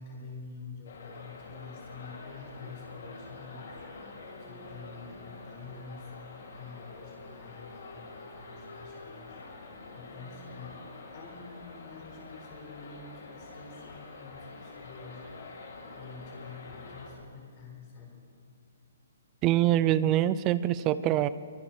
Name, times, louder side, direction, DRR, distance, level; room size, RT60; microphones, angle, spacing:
voice 1, 0.0-9.4 9.9-10.8 11.1-15.3 15.9-18.2, left 4 dB, 25° left, 0 dB, 4.8 m, -47 dB
sound 1, 0.8-17.1, left 3 dB, 55° left, 5.4 m, -46 dB
voice 2, 19.4-21.3, right 13 dB, 20° right, 15 dB, 0.5 m, -24 dB
26.0 x 23.5 x 4.5 m, 2.1 s
hypercardioid pair, 175°, 0 cm